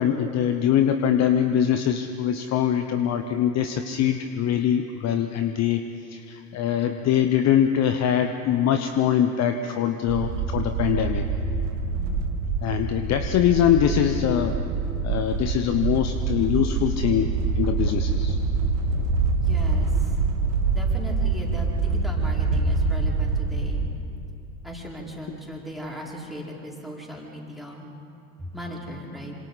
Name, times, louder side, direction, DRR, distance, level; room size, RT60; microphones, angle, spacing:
voice 1, 0.0-11.2 12.6-14.5 15.0-18.4, left 9 dB, 35° left, 7 dB, 1.0 m, -23 dB
sound 1, 10.1-23.8, right 4 dB, 55° right, 2.0 m, -25 dB
voice 2, 11.9-12.2 19.4-19.9 20.7-23.9 24.6-27.9 28.4-29.4, equal, ahead, -4 dB, 4.8 m, -37 dB
27.0 x 26.0 x 4.1 m, 2.7 s
figure-of-eight pair, 75°, 43 cm